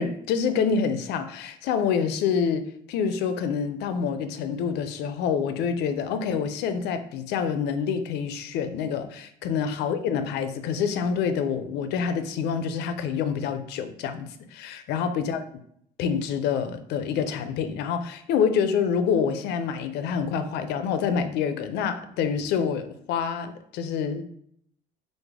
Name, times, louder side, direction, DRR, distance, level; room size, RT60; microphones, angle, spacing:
voice 1, 0.0-15.4 16.0-24.2, left 6 dB, 80° left, 10 dB, 0.4 m, -27 dB
3.2 x 2.0 x 3.5 m, 0.68 s
cardioid pair, 110°, 17 cm